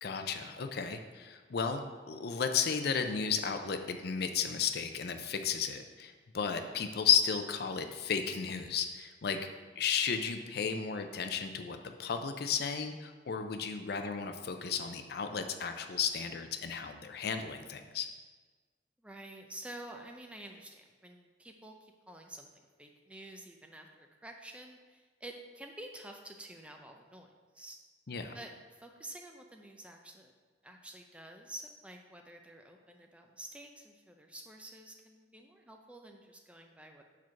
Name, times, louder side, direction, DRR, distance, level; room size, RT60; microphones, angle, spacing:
voice 1, 0.0-9.4 9.8-18.1 28.1-28.3, left 6 dB, 60° left, 7 dB, 0.5 m, -33 dB
voice 2, 19.0-27.8 28.3-30.3 30.6-37.0, right 1 dB, 5° right, 3 dB, 0.5 m, -49 dB
4.8 x 4.5 x 5.7 m, 1.4 s
head